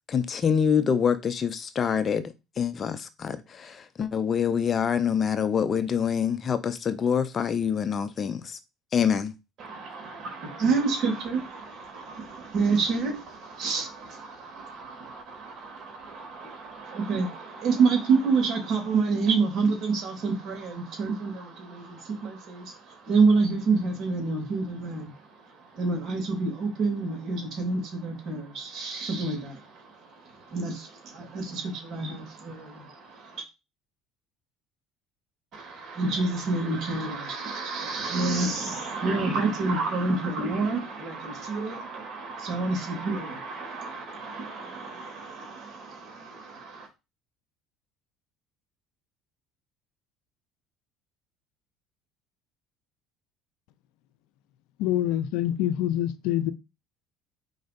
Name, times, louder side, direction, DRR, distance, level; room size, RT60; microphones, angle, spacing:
voice 1, 0.1-2.2 2.6-8.6 8.9-9.3, left 7 dB, 40° left, 0.8 m, -26 dB
voice 2, 9.6-15.9 16.4-33.4 35.5-46.9, right 4 dB, 50° right, 3.1 m, -28 dB
voice 3, 54.8-56.5, left 12 dB, 75° left, 0.6 m, -26 dB
4.8 x 3.9 x 5.2 m
supercardioid pair, 85°, 0 cm